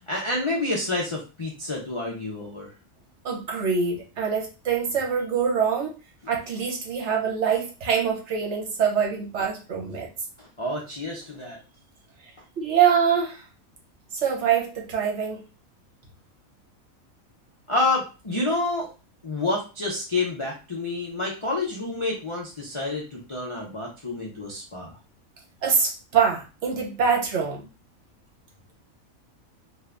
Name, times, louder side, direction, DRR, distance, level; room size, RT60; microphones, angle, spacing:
voice 1, 0.1-2.7 10.6-11.6 17.7-18.9 19.2-24.9, left 2 dB, 40° left, -3 dB, 0.4 m, -28 dB
voice 2, 3.2-5.9 6.3-10.1 12.6-13.4 14.1-15.4 25.6-27.6, right 7 dB, 60° right, -1 dB, 1.1 m, -24 dB
2.6 x 2.5 x 3.3 m, 0.32 s
omnidirectional pair, 1.5 m